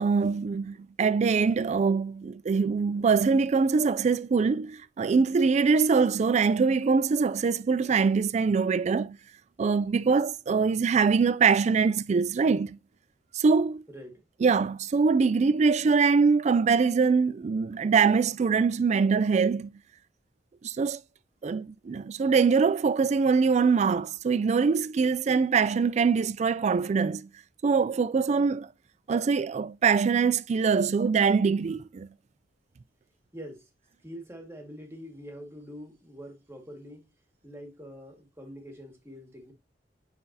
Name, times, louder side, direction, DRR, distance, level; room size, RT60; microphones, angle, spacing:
voice 1, 0.0-9.2 9.6-12.8 13.3-13.8 14.4-19.7 20.6-21.0 21.4-27.3 27.6-28.7 29.1-32.1, right 5 dB, 40° right, 0.3 m, -23 dB
voice 2, 13.9-14.2 33.3-33.7 34.0-37.1 37.4-39.5, equal, 15° right, 1.9 m, -44 dB
9.4 x 4.1 x 2.7 m
head